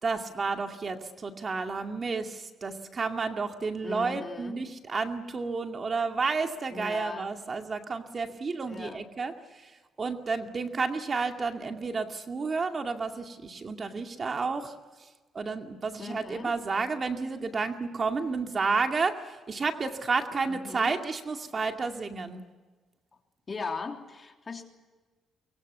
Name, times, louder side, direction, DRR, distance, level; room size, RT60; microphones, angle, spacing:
voice 1, 0.0-9.7 10.0-14.7 15.3-22.4, right 4 dB, 40° right, 5 dB, 2.3 m, -31 dB
voice 2, 3.8-4.6 6.7-7.3 8.7-9.0 16.0-16.5 20.4-20.9 23.5-24.7, left 4 dB, 35° left, 4 dB, 3.3 m, -38 dB
23.5 x 23.0 x 8.3 m, 1.3 s
cardioid pair, 90°, 0 cm